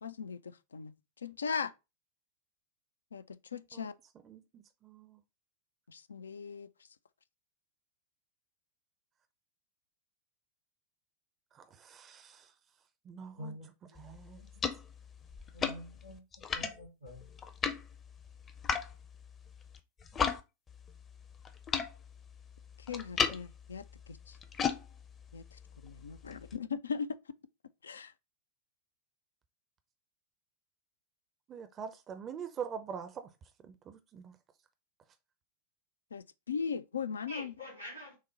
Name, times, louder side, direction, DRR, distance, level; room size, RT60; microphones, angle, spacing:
voice 1, 0.0-1.7 3.1-3.9 5.9-6.7 22.8-24.4 25.3-27.1 27.8-28.1 36.1-37.5, left 6 dB, 70° left, 0.3 m, -39 dB
voice 2, 4.3-5.2 11.5-12.5 13.1-13.6 14.0-14.4 31.5-33.3 33.6-34.4, right 7 dB, 30° right, 0.5 m, -44 dB
voice 3, 13.4-13.7 15.5-16.2 16.5-17.3 37.3-38.2, left 1 dB, 90° right, 2.6 m, -45 dB
sound 1, 14.0-20.4 20.7-26.6, left 6 dB, 25° left, 0.6 m, -38 dB
6.3 x 2.1 x 4.0 m
figure-of-eight pair, 90°, 0 cm